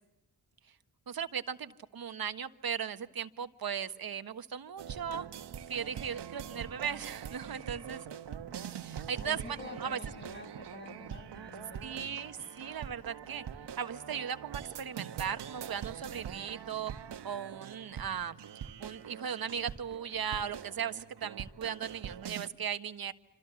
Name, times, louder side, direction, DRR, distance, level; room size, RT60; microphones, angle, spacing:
voice 1, 1.1-5.3 5.7-8.0 8.7-10.0 11.8-13.4 13.8-16.9 17.2-18.4 18.8-23.1, right 8 dB, 60° right, 9 dB, 1.5 m, -37 dB
sound 1, 4.8-22.5, right 8 dB, 75° right, 1.3 m, -44 dB
voice 2, 9.2-12.5, left 2 dB, 25° left, 7 dB, 6.8 m, -48 dB
28.5 x 26.0 x 7.1 m, 0.90 s
wide cardioid pair, 115°, 42 cm